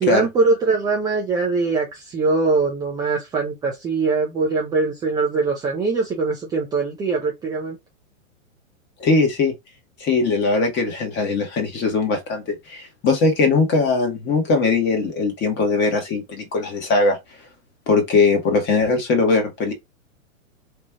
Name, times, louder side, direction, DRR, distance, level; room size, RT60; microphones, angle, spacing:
voice 1, 0.0-7.8, right 4 dB, 10° right, 0.5 m, -22 dB
voice 2, 9.0-9.5 10.0-17.2 17.9-19.7, left 3 dB, 25° left, 1.4 m, -20 dB
3.2 x 2.5 x 3.5 m
hypercardioid pair, 125°, 41 cm